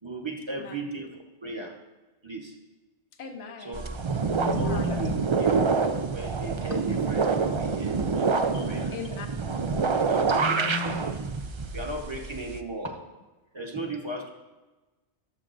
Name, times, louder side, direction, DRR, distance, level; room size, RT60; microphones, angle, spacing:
voice 1, 0.0-1.7 2.2-2.5 3.6-3.8 4.5-5.6 6.1-8.9 9.9-11.1 11.7-13.0 13.5-14.3, right 2 dB, 25° right, 1 dB, 1.2 m, -36 dB
voice 2, 3.2-3.9 4.6-5.1 6.5-6.6 8.5-9.6, left 5 dB, 70° left, 5 dB, 1.2 m, -41 dB
sound 1, 3.7-12.6, right 4 dB, 50° right, 0.3 m, -27 dB
voice 3, 3.9-5.2 9.9-11.1 13.7-13.8, left 2 dB, 20° left, 4 dB, 0.5 m, -35 dB
19.5 x 7.4 x 2.6 m, 1.2 s
omnidirectional pair, 1.2 m